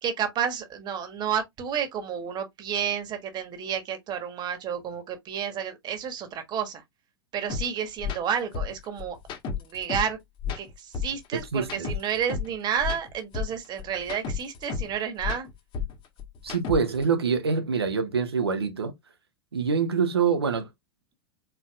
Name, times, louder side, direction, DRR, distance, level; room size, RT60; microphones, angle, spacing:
voice 1, 0.0-6.8 7.3-9.2 9.6-10.2 10.5-15.5, right 8 dB, 35° right, 1.5 m, -31 dB
sound 1, 7.5-7.6 8.0-8.2 8.5-10.1 10.4-12.5 12.8-14.9 15.2-17.0, left 6 dB, 40° left, 1.4 m, -32 dB
voice 2, 11.3-11.9 16.4-18.9 19.5-20.7, right 5 dB, 85° right, 1.0 m, -25 dB
4.5 x 4.0 x 2.4 m
hypercardioid pair, 95°, 13 cm